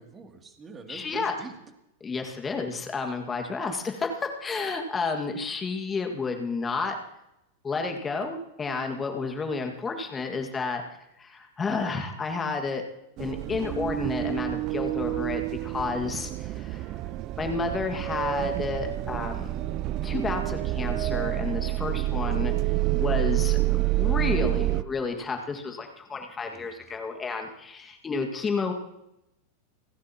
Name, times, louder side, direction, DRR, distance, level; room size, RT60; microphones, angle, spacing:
voice 1, 0.0-1.6 22.5-23.2 26.4-27.0, right 4 dB, 20° right, 3 dB, 2.7 m, -46 dB
voice 2, 0.9-1.3 2.0-7.0 7.6-10.8 11.2-12.8 13.2-17.0 17.4-19.5 20.0-22.5 23.0-28.7, left 4 dB, 20° left, 3 dB, 1.9 m, -31 dB
sound 1, 13.2-24.8, right 16 dB, 45° right, 0.4 m, -28 dB
30.0 x 11.0 x 3.0 m, 0.86 s
hypercardioid pair, 95°, 0 cm